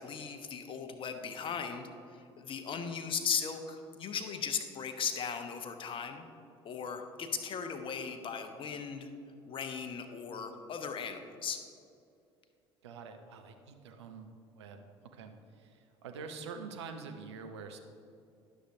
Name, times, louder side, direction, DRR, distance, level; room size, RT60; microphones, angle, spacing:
voice 1, 0.0-6.3 6.6-9.1 9.5-11.6, left 6 dB, 35° left, 7 dB, 0.8 m, -37 dB
voice 2, 12.8-14.3 14.5-14.8 15.1-15.3 15.6-17.8, right 5 dB, 70° right, 5 dB, 0.6 m, -46 dB
11.0 x 6.4 x 2.7 m, 2.6 s
figure-of-eight pair, 60°, 15 cm